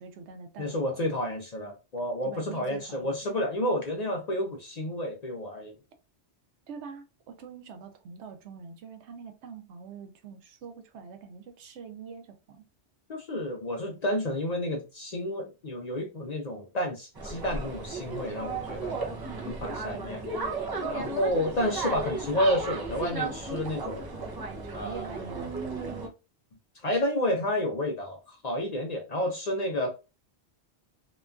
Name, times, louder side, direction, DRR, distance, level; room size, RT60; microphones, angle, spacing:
voice 1, 0.0-1.0 2.2-3.1 6.7-12.6 24.6-26.0, right 5 dB, 85° right, 0.9 m, -44 dB
voice 2, 0.6-5.7 13.1-19.2 19.5-20.2 20.9-24.0 24.7-25.1 26.8-29.9, left 1 dB, 50° left, 0.5 m, -30 dB
sound 1, 17.2-26.1, right 3 dB, 35° right, 0.4 m, -35 dB
2.9 x 2.2 x 2.3 m
omnidirectional pair, 1.1 m